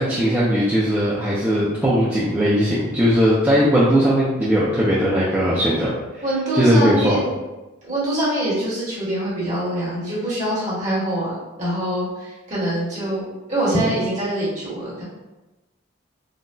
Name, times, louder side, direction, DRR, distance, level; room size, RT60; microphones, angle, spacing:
voice 1, 0.0-5.9 6.6-7.2, equal, 10° right, -9 dB, 0.3 m, -18 dB
voice 2, 6.2-7.3 7.9-15.0, right 1 dB, 35° right, -9 dB, 1.1 m, -24 dB
3.8 x 2.0 x 2.2 m, 1.1 s
head